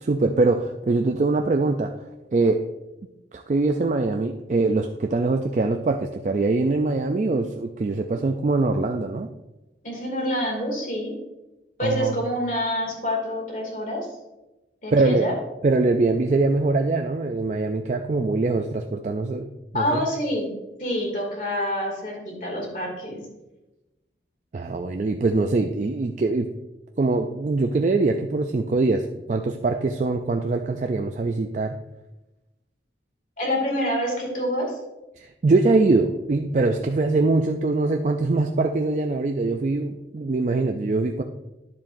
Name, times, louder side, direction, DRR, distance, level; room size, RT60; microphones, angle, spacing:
voice 1, 0.0-1.9 2.3-2.7 3.3-9.3 11.8-12.2 14.9-15.3 15.6-19.5 19.7-20.1 24.5-26.5 27.0-31.8 35.2-41.2, right 3 dB, 40° right, 5 dB, 0.4 m, -23 dB
voice 2, 9.8-11.1 11.8-14.1 14.8-15.3 19.7-20.5 20.8-23.2 33.4-34.8, equal, 45° left, 0 dB, 2.4 m, -27 dB
10.5 x 7.2 x 2.6 m, 0.99 s
head